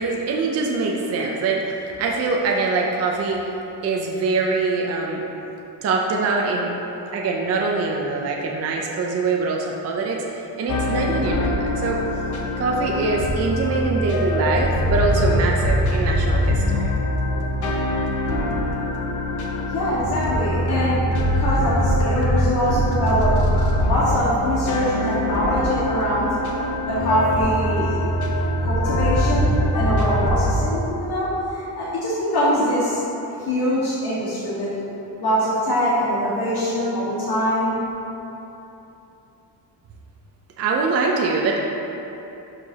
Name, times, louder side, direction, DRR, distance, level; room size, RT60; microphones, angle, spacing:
voice 1, 0.0-3.5 3.8-5.2 5.8-6.7 7.1-12.0 12.6-16.6 40.6-41.6, right 3 dB, 35° right, 0 dB, 0.5 m, -23 dB
sound 1, 10.7-30.5, equal, 40° left, 0.9 m, -23 dB
voice 2, 19.7-23.3 23.8-26.3 26.6-28.0 28.6-33.0 33.4-34.7 35.2-37.8, equal, 60° left, -9 dB, 1.6 m, -23 dB
12.0 x 5.1 x 2.8 m, 3.0 s
cardioid pair, 165°, 44 cm